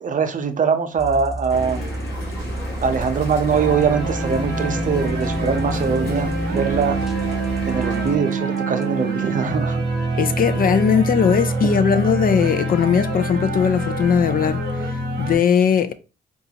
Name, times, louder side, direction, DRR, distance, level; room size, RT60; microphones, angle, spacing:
voice 1, 0.0-1.9 2.8-7.0 7.7-9.8, right 6 dB, 45° right, 0.6 m, -22 dB
sound 1, 1.0-8.8, right 1 dB, ahead, 0.7 m, -31 dB
sound 2, 1.5-8.2, equal, 90° left, 1.2 m, -33 dB
sound 3, 3.5-15.3, right 2 dB, 70° right, 0.8 m, -25 dB
voice 2, 10.2-15.9, left 7 dB, 55° left, 0.5 m, -19 dB
4.0 x 2.3 x 2.8 m
supercardioid pair, 50°, 18 cm